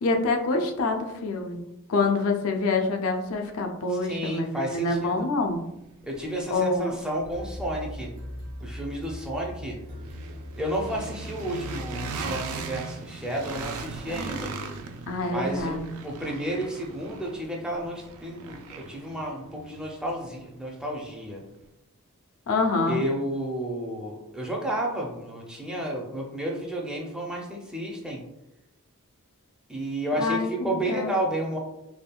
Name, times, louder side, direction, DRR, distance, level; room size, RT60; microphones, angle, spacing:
voice 1, 0.0-1.6 1.9-5.6 6.5-7.0 15.1-15.9 22.5-23.0 30.2-31.1, left 3 dB, 80° left, 4 dB, 0.4 m, -26 dB
voice 2, 3.9-5.3 6.0-8.1 8.6-9.8 10.6-14.5 15.3-21.4 22.9-28.2 29.7-31.6, right 1 dB, 5° right, -2 dB, 0.4 m, -31 dB
sound 1, 5.3-21.1, right 4 dB, 80° right, 0.3 m, -40 dB
sound 2, 7.3-13.0, left 1 dB, 55° right, 1.0 m, -40 dB
3.4 x 2.2 x 2.2 m, 0.87 s
head